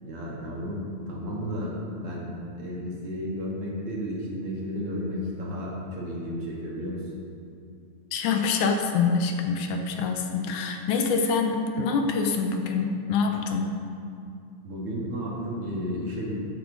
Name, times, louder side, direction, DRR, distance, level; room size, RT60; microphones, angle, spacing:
voice 1, 0.0-7.0 14.6-16.4, equal, 50° right, -4 dB, 2.6 m, -33 dB
voice 2, 8.1-13.7, left 5 dB, 80° left, 4 dB, 2.3 m, -25 dB
13.5 x 9.7 x 4.0 m, 2.5 s
omnidirectional pair, 3.5 m